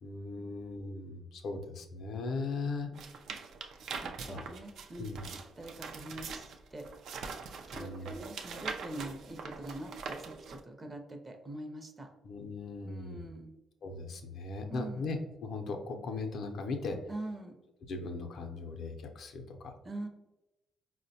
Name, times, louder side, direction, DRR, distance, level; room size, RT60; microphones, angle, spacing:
voice 1, 0.0-2.9 4.3-4.4 5.0-5.2 7.7-8.1 12.2-13.3 13.8-17.0 17.9-19.7, left 3 dB, 65° left, 4 dB, 0.5 m, -38 dB
sound 1, 2.9-10.6, right 5 dB, 70° right, 0.3 m, -43 dB
voice 2, 4.0-6.9 7.7-12.1 12.8-13.5 14.7-15.1 17.1-17.6 19.8-20.1, right 1 dB, 25° right, 5 dB, 0.5 m, -44 dB
4.4 x 2.1 x 2.7 m, 0.96 s
cardioid pair, 90°, 0 cm